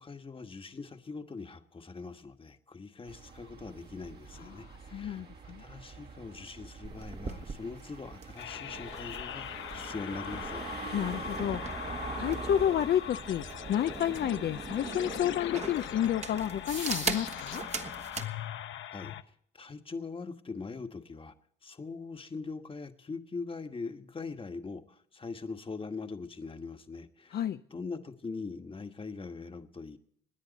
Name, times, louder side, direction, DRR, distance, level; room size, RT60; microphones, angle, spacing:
voice 1, 0.0-5.3 5.6-10.6 18.9-19.1 19.5-21.3 21.6-27.4 27.7-30.0, left 4 dB, 25° left, 7 dB, 1.4 m, -42 dB
sound 1, 3.1-17.2, right 5 dB, 55° right, 2.1 m, -45 dB
voice 2, 4.5-5.6 10.9-11.6 12.2-17.6 27.3-27.6, left 10 dB, 55° left, 9 dB, 0.5 m, -30 dB
sound 2, 6.8-18.3, right 4 dB, 35° right, 1.3 m, -41 dB
sound 3, 8.4-19.2, left 10 dB, 75° left, 0.9 m, -41 dB
26.5 x 10.0 x 4.1 m, 0.66 s
cardioid pair, 90°, 20 cm